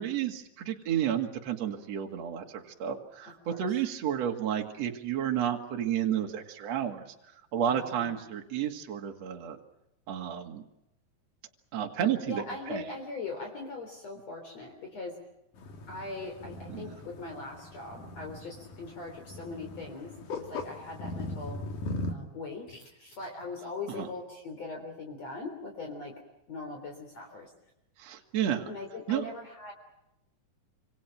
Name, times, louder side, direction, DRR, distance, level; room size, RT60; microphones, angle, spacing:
voice 1, 0.0-7.1 7.5-9.6 10.1-10.6 11.7-12.8 16.7-17.0 23.9-24.1 28.0-28.7 29.1-29.3, right 9 dB, 50° right, 3 dB, 3.1 m, -31 dB
voice 2, 7.7-8.2 12.3-15.2 15.9-21.6 22.1-26.1 26.5-27.5 28.7-29.7, left 3 dB, 50° left, 2 dB, 4.7 m, -40 dB
sound 1, 15.5-22.1, left 2 dB, 65° left, 4.0 m, -40 dB
27.0 x 26.5 x 6.0 m, 0.87 s
omnidirectional pair, 4.0 m